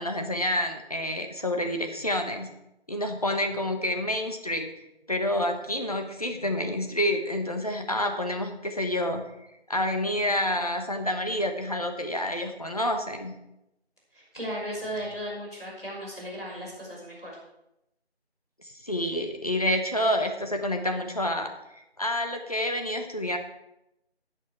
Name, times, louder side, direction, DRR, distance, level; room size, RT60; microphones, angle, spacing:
voice 1, 0.0-2.5 2.9-4.7 5.1-9.2 9.7-13.3 18.6-23.4, left 1 dB, 35° left, 4 dB, 1.2 m, -28 dB
voice 2, 14.1-17.3, equal, 5° left, -18 dB, 2.3 m, -36 dB
16.5 x 6.4 x 4.7 m, 0.86 s
figure-of-eight pair, 180°, 33 cm